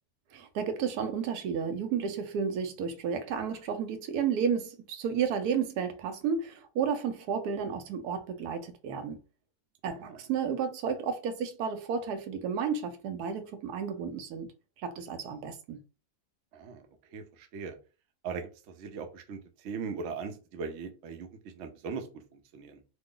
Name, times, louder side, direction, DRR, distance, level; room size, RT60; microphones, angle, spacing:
voice 1, 0.3-9.2 9.8-14.5 14.8-15.8, right 6 dB, 80° right, 1.1 m, -32 dB
voice 2, 16.5-17.8 18.2-21.3 21.5-22.1 22.3-22.8, right 5 dB, 65° right, 0.8 m, -39 dB
3.0 x 2.0 x 3.6 m
omnidirectional pair, 1.6 m